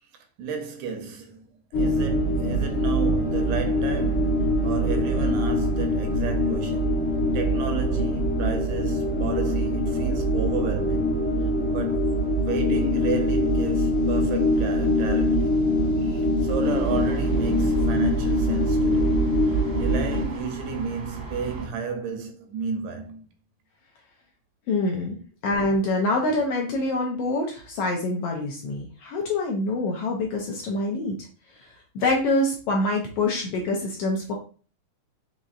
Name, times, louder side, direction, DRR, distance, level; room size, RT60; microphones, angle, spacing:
voice 1, 0.1-7.0 7.3-15.6 16.0-23.3, right 5 dB, 85° right, 2.2 m, -33 dB
sound 1, 1.7-20.2, equal, 60° left, 1.5 m, -23 dB
sound 2, 16.6-21.7, right 1 dB, 50° right, 0.9 m, -36 dB
voice 2, 24.7-25.2 25.4-31.1 31.9-34.3, left 2 dB, 75° left, 1.5 m, -25 dB
5.3 x 3.0 x 2.5 m
omnidirectional pair, 3.3 m